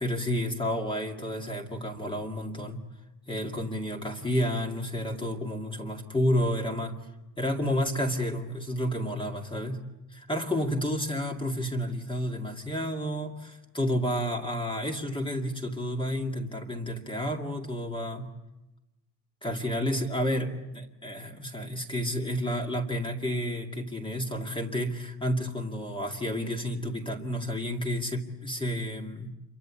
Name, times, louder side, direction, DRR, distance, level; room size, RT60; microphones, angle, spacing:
voice 1, 0.0-2.8 3.3-7.0 7.4-9.8 10.1-18.3 19.4-29.3, equal, 10° left, 2 dB, 2.3 m, -30 dB
28.5 x 23.5 x 8.5 m, 0.98 s
cardioid pair, 170°, 43 cm